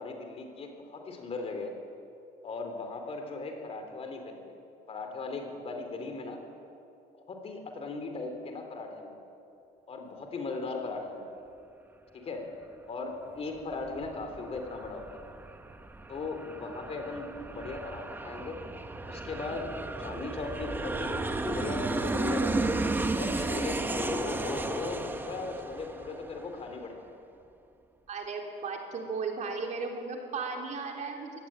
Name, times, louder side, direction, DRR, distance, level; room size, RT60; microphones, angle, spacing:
voice 1, 0.0-1.7 2.4-4.6 4.9-6.4 7.1-9.2 9.9-11.3 12.1-12.5 12.9-15.2 16.1-18.6 19.1-22.8 23.2-27.1, left 3 dB, 35° left, 5 dB, 3.5 m, -38 dB
Aircraft, 13.5-26.7, right 2 dB, 10° right, 1.0 m, -34 dB
voice 2, 28.1-31.3, right 4 dB, 45° right, 2 dB, 3.5 m, -35 dB
23.5 x 18.0 x 9.0 m, 2.6 s
cardioid pair, 160°, 17 cm